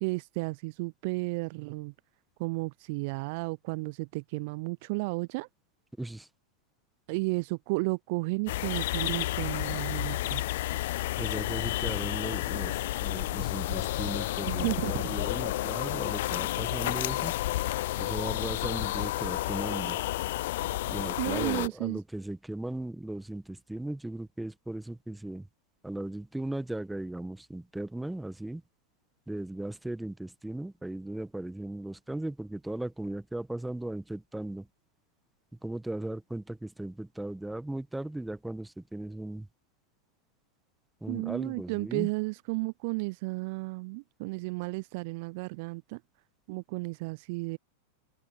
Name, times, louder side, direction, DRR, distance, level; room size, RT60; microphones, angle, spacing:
voice 1, 0.0-1.9 2.4-5.5 7.1-10.4 13.7-13.8 14.5-14.9 21.2-22.0 41.1-46.0 46.5-47.6, right 27 dB, 50° right, 0.4 m, -33 dB
voice 2, 6.0-6.3 11.2-17.3 17.6-20.0 20.9-25.5 25.8-28.6 29.3-34.7 35.6-39.5 41.0-42.1, right 1 dB, 5° right, 1.6 m, -37 dB
sound 1, 8.5-21.7, left 16 dB, 60° left, 0.3 m, -31 dB
open air
figure-of-eight pair, 95°, 0 cm